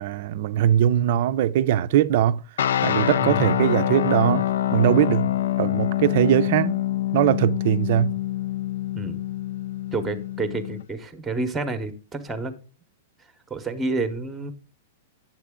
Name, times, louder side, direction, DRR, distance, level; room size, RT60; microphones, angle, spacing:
voice 1, 0.0-2.4 2.8-4.5 4.7-5.3 5.6-6.8 7.1-8.1, right 11 dB, 45° right, 0.5 m, -21 dB
sound 1, 2.6-10.8, left 12 dB, 80° left, 0.4 m, -25 dB
voice 2, 3.2-3.5 8.9-9.2 9.9-12.5 13.5-14.5, right 3 dB, 5° right, 0.8 m, -29 dB
9.1 x 7.4 x 3.6 m
supercardioid pair, 170°, 0 cm